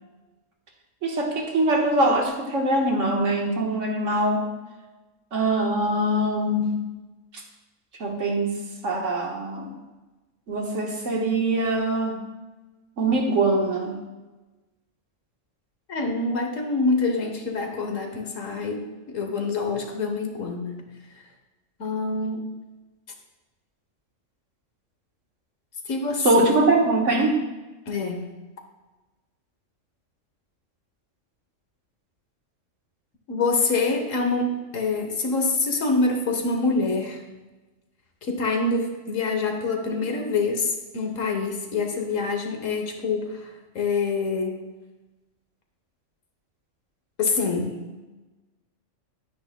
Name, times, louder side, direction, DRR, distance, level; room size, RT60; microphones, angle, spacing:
voice 1, 1.0-4.5 5.3-6.8 8.0-9.7 10.5-12.2 13.0-14.0 26.2-27.4, right 2 dB, 70° right, 0 dB, 1.7 m, -23 dB
voice 2, 15.9-20.8 21.8-22.4 25.9-26.5 27.9-28.3 33.3-37.2 38.2-43.5 43.7-44.6 47.2-47.8, left 3 dB, 90° left, 4 dB, 1.5 m, -26 dB
10.5 x 9.3 x 2.3 m, 1.2 s
omnidirectional pair, 1.3 m